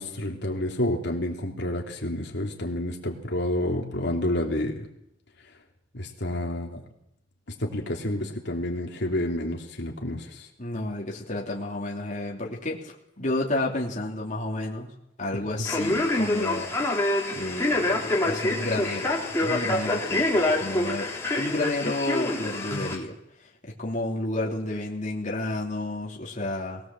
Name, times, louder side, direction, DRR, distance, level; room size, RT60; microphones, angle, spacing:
voice 1, 0.0-4.9 5.9-6.8 7.6-10.5 15.3-15.6, left 1 dB, 60° left, 0 dB, 3.1 m, -29 dB
voice 2, 10.6-14.9 15.2-16.7 17.3-19.1 19.4-21.1 21.4-23.1 23.8-26.8, left 2 dB, 40° left, -2 dB, 3.1 m, -31 dB
Male speech man speaking, 15.6-23.0, left 2 dB, 15° left, 3.8 m, -26 dB
22.0 x 18.0 x 7.6 m, 0.82 s
head